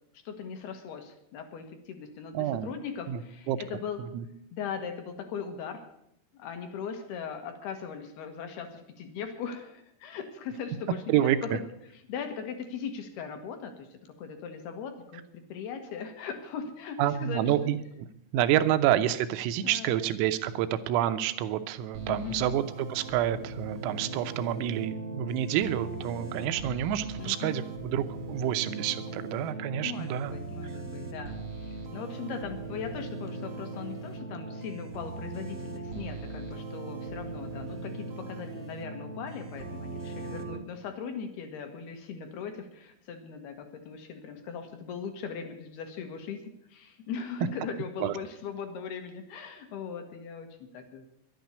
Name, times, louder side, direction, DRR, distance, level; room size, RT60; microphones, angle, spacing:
voice 1, 0.1-4.0 4.5-5.9 6.3-11.6 12.1-13.9 14.2-17.7 19.6-20.0 22.1-22.6 27.2-27.6 29.8-51.1, left 6 dB, 65° left, 6 dB, 2.8 m, -39 dB
voice 2, 2.4-2.7 3.1-3.2 3.5-3.6 4.0-4.3 11.1-11.6 17.0-17.8 18.3-30.4 48.0-48.2, right 11 dB, 85° right, 10 dB, 3.6 m, -28 dB
sound 1, 21.9-40.6, right 3 dB, 35° right, 1.2 m, -39 dB
12.0 x 10.5 x 9.4 m, 0.76 s
omnidirectional pair, 5.9 m